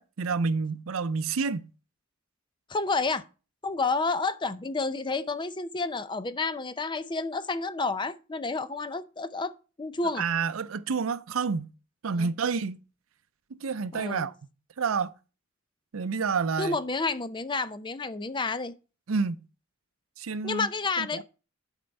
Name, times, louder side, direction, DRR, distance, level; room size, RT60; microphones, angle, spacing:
voice 1, 0.0-1.7 10.2-11.7 12.0-12.8 13.6-14.3 14.8-15.1 15.9-16.8 19.1-19.5 20.2-20.7 21.0-21.2, right 5 dB, 80° right, 0.5 m, -29 dB
voice 2, 2.7-3.2 3.6-9.5 9.8-10.3 12.2-12.3 13.9-14.3 16.6-18.7 20.4-21.2, left 3 dB, 25° left, 0.5 m, -30 dB
11.0 x 4.5 x 5.3 m
head